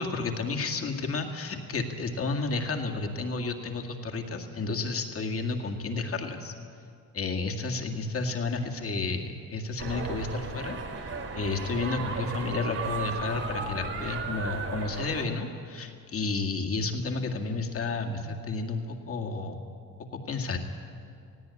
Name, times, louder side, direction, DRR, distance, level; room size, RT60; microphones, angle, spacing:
voice 1, 0.0-6.5 7.1-11.1 11.3-19.7 20.1-20.6, left 3 dB, 45° left, 3 dB, 2.0 m, -31 dB
sound 1, 9.8-15.2, right 4 dB, 45° right, 3.8 m, -35 dB
18.5 x 16.0 x 9.6 m, 2.4 s
cardioid pair, 140°, 33 cm